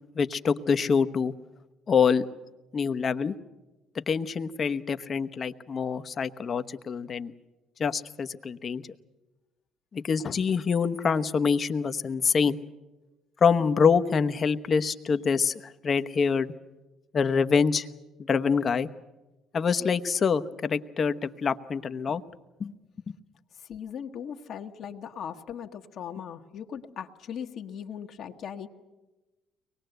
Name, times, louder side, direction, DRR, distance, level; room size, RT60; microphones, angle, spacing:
voice 1, 0.1-1.3 1.9-2.3 2.7-3.3 4.1-7.3 7.8-8.8 9.9-12.6 13.4-16.5 17.1-17.9 18.3-18.9 19.5-22.2 22.6-22.7, left 6 dB, 45° left, 9 dB, 1.0 m, -25 dB
voice 2, 23.7-28.7, left 8 dB, 60° left, 4 dB, 1.4 m, -39 dB
23.5 x 20.0 x 8.0 m, 1.1 s
supercardioid pair, 65°, 0 cm